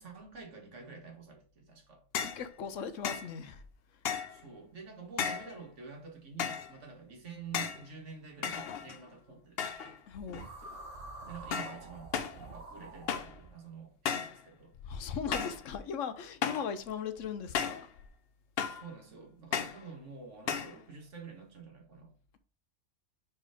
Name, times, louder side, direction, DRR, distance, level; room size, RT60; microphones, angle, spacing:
voice 1, 0.0-2.0 4.3-10.0 11.3-14.7 18.6-22.1, right 5 dB, 75° right, 1.9 m, -48 dB
sound 1, 2.1-2.4 3.0-3.3 4.0-4.4 5.2-5.5 6.4-6.7 7.5-7.9 8.4-9.1 9.6-10.0 10.3-10.7 11.5-11.8 12.1-12.4 13.1-13.4 14.0-14.4 15.3-15.6 16.4-16.7 17.5-17.9 18.6-18.9 19.5-19.8 20.5-20.8, left 7 dB, 60° left, 0.8 m, -34 dB
voice 2, 2.2-3.6 10.1-10.5 14.8-17.9, left 7 dB, 80° left, 1.1 m, -38 dB
sound 2, 10.3-13.5, right 2 dB, 50° right, 1.4 m, -47 dB
5.0 x 4.6 x 4.9 m
omnidirectional pair, 1.3 m